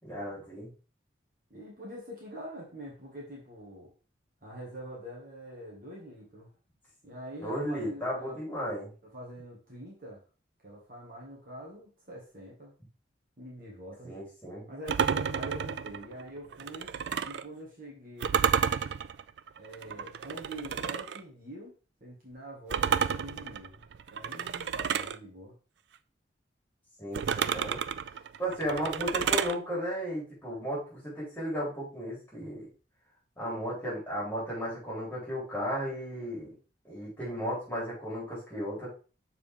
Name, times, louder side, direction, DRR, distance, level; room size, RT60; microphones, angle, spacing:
voice 1, 0.0-0.7 7.4-8.9 14.0-14.7 27.0-27.8 28.4-32.7 33.4-36.5 36.8-38.9, equal, 10° left, -7 dB, 3.9 m, -34 dB
voice 2, 1.5-3.9 4.4-6.5 7.0-8.4 9.1-10.2 10.6-12.7 13.4-14.2 14.7-16.9 17.2-18.6 19.6-21.7 22.0-23.8 24.1-25.6, right 1 dB, 45° right, -3 dB, 2.1 m, -45 dB
sound 1, 14.9-17.5 18.2-21.2 22.7-25.2 27.1-29.6, right 7 dB, 65° right, 0.3 m, -31 dB
6.7 x 4.6 x 3.7 m, 0.35 s
head